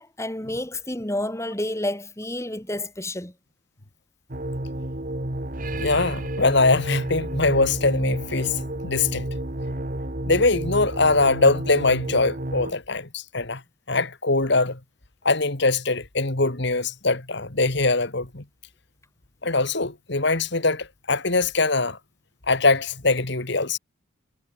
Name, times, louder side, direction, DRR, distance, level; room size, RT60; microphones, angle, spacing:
voice 1, 0.0-3.3, left 1 dB, 15° left, 2.4 m, -30 dB
sound 1, 4.3-12.7, right 1 dB, 40° right, 1.9 m, -31 dB
voice 2, 5.8-9.3 10.3-13.6 13.9-14.8 15.2-18.4 19.4-22.0 22.5-23.8, left 3 dB, 55° left, 2.1 m, -22 dB
head